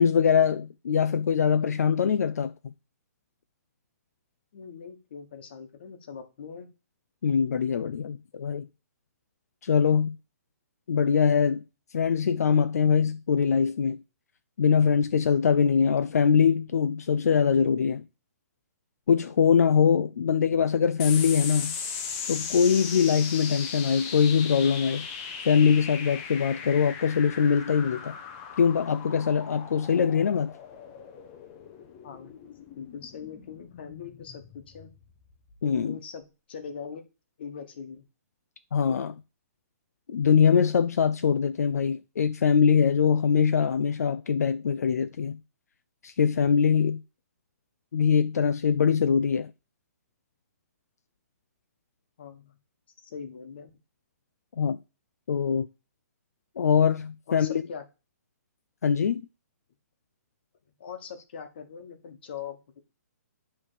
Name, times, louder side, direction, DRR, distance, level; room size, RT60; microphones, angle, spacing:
voice 1, 0.0-2.5 7.2-8.7 9.6-10.1 10.9-11.6 11.9-14.0 14.6-18.0 19.1-21.7 22.3-25.1 25.4-28.1 28.6-30.5 35.6-36.0 38.7-39.1 40.1-45.4 46.0-47.0 47.9-49.5 54.6-54.8 55.3-55.7 56.6-57.7 58.8-59.2, left 6 dB, 70° left, 0.5 m, -23 dB
voice 2, 4.5-6.7 32.0-32.3 32.7-34.9 35.6-36.2 36.5-37.0 37.4-38.0 38.9-39.1 52.2-52.6 53.0-53.7 57.3-57.8 60.8-62.8, left 6 dB, 40° left, 1.3 m, -41 dB
sound 1, 21.0-35.8, left 6 dB, 20° left, 0.7 m, -38 dB
10.0 x 3.4 x 6.7 m
hypercardioid pair, 175°, 9 cm